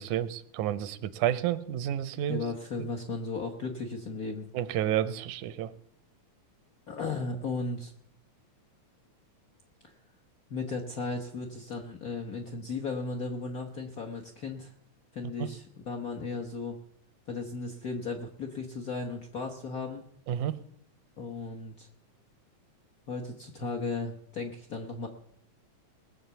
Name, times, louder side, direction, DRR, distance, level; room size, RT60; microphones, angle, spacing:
voice 1, 0.0-2.4 4.5-5.7 15.4-15.5 20.3-20.6, right 11 dB, 85° right, 14 dB, 2.1 m, -30 dB
voice 2, 2.3-4.5 6.9-7.9 10.5-14.7 15.1-16.8 17.3-20.1 21.2-21.9 23.1-25.1, left 3 dB, 70° left, 2 dB, 0.8 m, -35 dB
19.5 x 8.1 x 6.9 m, 0.71 s
omnidirectional pair, 3.4 m